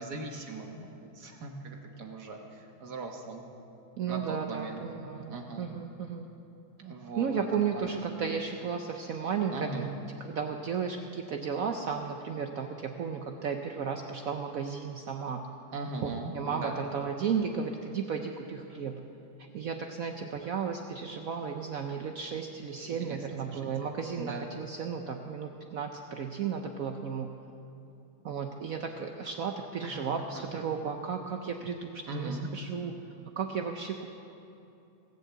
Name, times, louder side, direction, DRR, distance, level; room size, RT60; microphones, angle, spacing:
voice 1, 0.0-3.5 4.1-4.8 5.3-5.7 6.8-8.0 9.5-9.9 15.7-16.7 22.7-23.6 24.2-24.5 29.8-30.0 30.3-30.4 32.1-32.5, right 3 dB, 55° right, 2 dB, 1.6 m, -39 dB
voice 2, 4.0-6.3 7.2-9.9 10.2-15.4 16.0-16.1 16.3-19.0 19.5-27.3 28.2-32.9 33.4-34.1, right 6 dB, 80° right, 4 dB, 0.7 m, -34 dB
18.5 x 7.5 x 7.8 m, 2.9 s
omnidirectional pair, 2.3 m